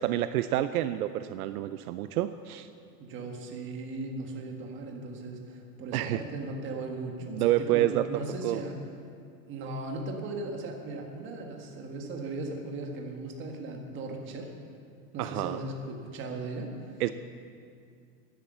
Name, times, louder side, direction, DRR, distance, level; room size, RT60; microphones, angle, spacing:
voice 1, 0.0-2.7 5.9-6.2 7.3-8.6 15.2-15.6 17.0-17.1, right 13 dB, 70° right, 11 dB, 0.6 m, -28 dB
voice 2, 3.0-8.8 9.5-14.5 15.1-17.0, right 2 dB, 25° right, 2 dB, 1.6 m, -37 dB
11.5 x 10.0 x 7.9 m, 2.3 s
supercardioid pair, 165°, 45 cm